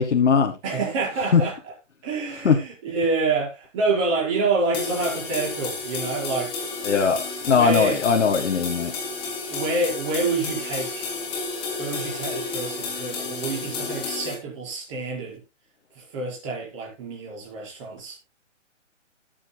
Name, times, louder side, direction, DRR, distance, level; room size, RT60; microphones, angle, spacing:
voice 1, 0.0-0.5 1.3-1.4 2.4-2.5 6.8-8.9, left 6 dB, 70° left, 1.6 m, -20 dB
voice 2, 0.6-1.7 2.0-6.7 7.5-8.0 9.5-11.1 11.8-15.4 16.0-18.2, right 3 dB, 25° right, 5.1 m, -27 dB
sound 1, 4.7-14.3, left 4 dB, 15° left, 3.0 m, -31 dB
19.5 x 7.4 x 2.3 m
hypercardioid pair, 165°, 37 cm